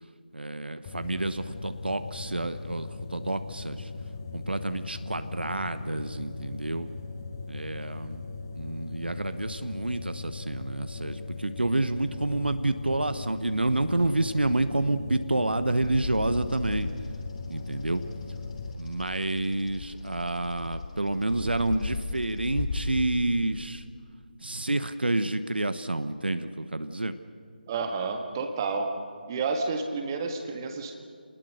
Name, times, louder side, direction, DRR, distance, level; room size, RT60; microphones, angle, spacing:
voice 1, 0.3-3.9 4.3-6.9 7.5-8.2 8.6-16.9 17.5-18.0 18.8-23.8 24.4-27.1, right 2 dB, 75° right, 11 dB, 1.0 m, -29 dB
sound 1, 0.9-18.7, left 4 dB, 25° left, 1.2 m, -39 dB
Bird vocalization bird call bird song, 15.8-23.1, left 3 dB, 40° left, 2.9 m, -37 dB
voice 2, 27.7-28.9 29.3-31.0, right 4 dB, 25° right, 4 dB, 1.7 m, -30 dB
27.5 x 20.0 x 6.5 m, 2.2 s
figure-of-eight pair, 155°, 5 cm